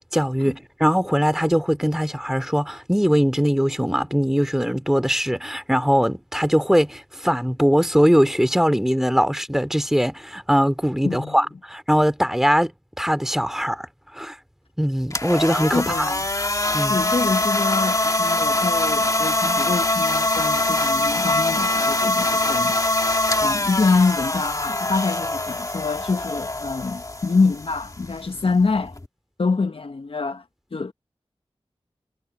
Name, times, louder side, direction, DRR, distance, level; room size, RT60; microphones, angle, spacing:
voice 1, 0.0-12.7 13.0-13.9 14.1-14.3 14.8-16.1 16.7-17.0, equal, 5° right, 2.9 m, -21 dB
voice 2, 11.0-11.3 15.7-16.2 16.9-22.8 23.4-29.0 29.4-30.4 30.7-30.9, left 4 dB, 60° left, 0.9 m, -25 dB
sound 1, 15.0-29.1, left 2 dB, 35° left, 1.7 m, -23 dB
wide cardioid pair, 60°, 10 cm